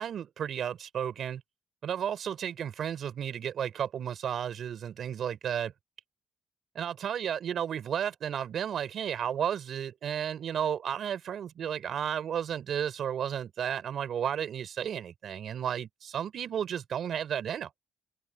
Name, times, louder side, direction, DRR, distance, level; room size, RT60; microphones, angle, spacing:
voice 1, 0.0-1.4 1.8-5.7 6.8-17.7, right 9 dB, 65° right, 4.2 m, -33 dB
cardioid pair, 90°, 0 cm